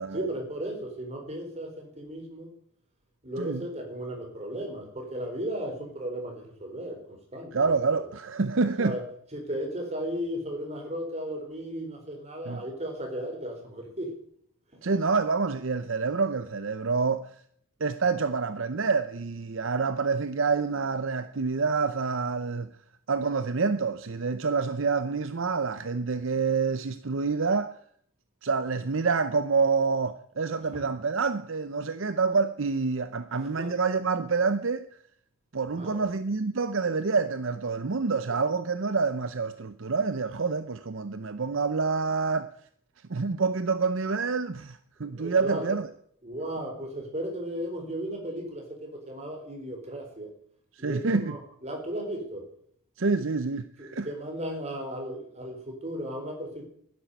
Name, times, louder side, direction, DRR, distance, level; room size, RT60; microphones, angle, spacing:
voice 1, 0.0-2.5 3.2-8.1 8.8-14.1 14.7-14.8 30.7-30.9 33.4-33.7 35.7-36.1 38.3-38.4 45.0-45.8 46.2-50.3 50.8-52.5 53.8-56.7, right 1 dB, 30° right, 4.4 m, -35 dB
voice 2, 7.5-9.0 12.5-12.6 14.8-17.4 17.8-22.7 23.1-27.7 28.4-34.8 35.5-42.5 43.1-45.9 50.7-51.3 53.0-54.1, right 4 dB, 60° right, 0.7 m, -27 dB
12.0 x 10.5 x 8.0 m
head